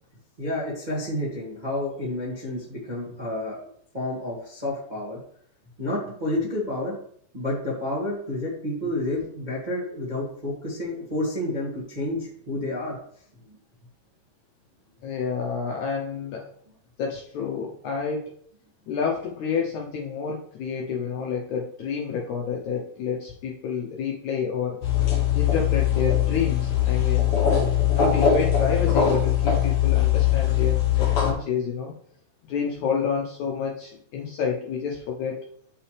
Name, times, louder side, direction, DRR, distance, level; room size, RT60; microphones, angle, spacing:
voice 1, 0.4-3.6 3.9-5.2 5.8-6.9 7.3-13.0 13.5-13.6, left 1 dB, 20° right, -5 dB, 1.1 m, -30 dB
voice 2, 15.0-16.5 17.0-18.3 18.9-24.8 25.3-27.4 27.8-31.9 32.5-35.4, left 6 dB, 70° left, -1 dB, 1.9 m, -29 dB
sound 1, 24.8-31.3, left 10 dB, 50° left, 2.0 m, -21 dB
8.2 x 6.1 x 3.3 m, 0.63 s
omnidirectional pair, 4.3 m